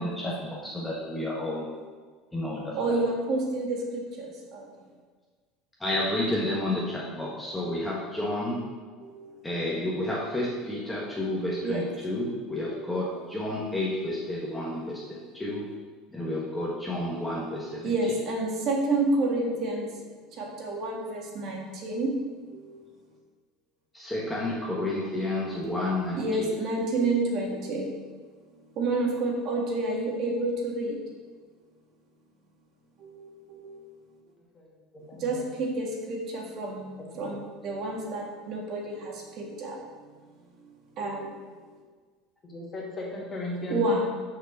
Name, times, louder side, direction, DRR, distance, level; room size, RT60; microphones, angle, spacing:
voice 1, 0.0-1.6 2.3-3.0 5.8-8.6 9.4-15.7 16.1-18.0 23.9-26.5, left 1 dB, 10° left, -5 dB, 1.3 m, -31 dB
voice 2, 1.0-1.6 2.8-4.6 9.0-9.2 9.5-9.7 11.6-11.8 13.0-13.1 13.5-13.6 14.5-14.7 17.5-19.9 20.4-22.1 22.5-22.7 25.0-25.9 26.2-27.9 28.8-30.9 33.0-33.2 33.5-33.7 35.2-36.9 37.2-39.8 41.0-41.3 43.7-44.1, right 2 dB, 50° right, -1 dB, 1.8 m, -29 dB
voice 3, 35.1-35.5 37.1-37.4 42.4-43.9, left 2 dB, 25° left, -3 dB, 2.2 m, -36 dB
6.4 x 5.1 x 6.6 m, 1.5 s
supercardioid pair, 125°, 0 cm